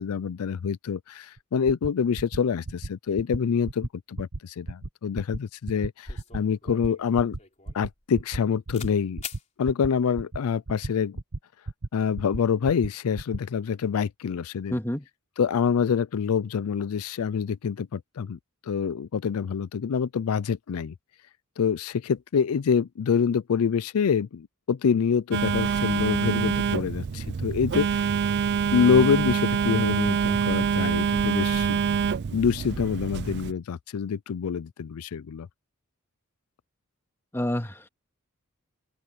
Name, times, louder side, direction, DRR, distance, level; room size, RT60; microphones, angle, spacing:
voice 1, 0.0-7.4 7.7-9.2 9.6-11.2 11.9-14.8 15.4-20.9 21.6-28.1 28.7-31.8 32.3-35.5, left 6 dB, 80° left, 0.4 m, -26 dB
sound 1, 1.4-1.5 1.7-1.9 2.2-2.4 2.7-2.9 3.2-3.4 3.7-3.9 4.2-4.4 4.7-4.9 5.2-5.4 5.7-5.9 6.2-6.4 6.7-6.9 7.2-7.4 7.7-7.9 8.2-8.4 8.7-8.9 9.2-9.4 9.7-9.9 10.2-10.4 10.7-10.9 11.2-11.4 11.7-11.9 12.2-12.4 12.7-12.9 13.2-13.4, right 2 dB, 85° right, 1.4 m, -33 dB
sound 2, 6.1-8.4 8.7-8.9 9.2-9.4, left 5 dB, 35° left, 3.6 m, -42 dB
voice 2, 14.7-15.1 37.3-37.9, left 1 dB, 10° left, 2.2 m, -28 dB
Telephone, 25.3-33.5, right 6 dB, 50° right, 0.4 m, -26 dB
open air
head